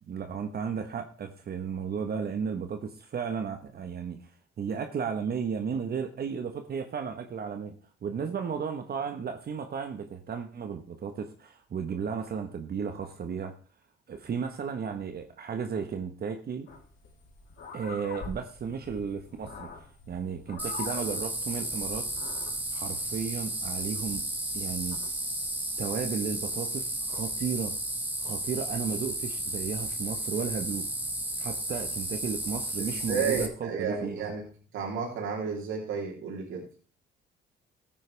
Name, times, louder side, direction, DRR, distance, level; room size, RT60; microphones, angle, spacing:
voice 1, 0.1-4.2 4.6-7.8 8.0-13.5 14.1-16.7 17.7-22.1 22.7-24.2 24.5-25.0 25.8-27.8 28.2-30.9 31.4-34.3, right 6 dB, 50° right, 6 dB, 1.3 m, -34 dB
sound 1, 16.7-25.5, left 4 dB, 70° left, 3.4 m, -46 dB
sound 2, 20.6-33.5, right 1 dB, 10° right, 1.9 m, -33 dB
voice 2, 32.8-34.4 34.7-36.6, right 5 dB, 85° right, 0 dB, 3.5 m, -32 dB
14.0 x 9.1 x 3.4 m, 0.41 s
cardioid pair, 90°, 20 cm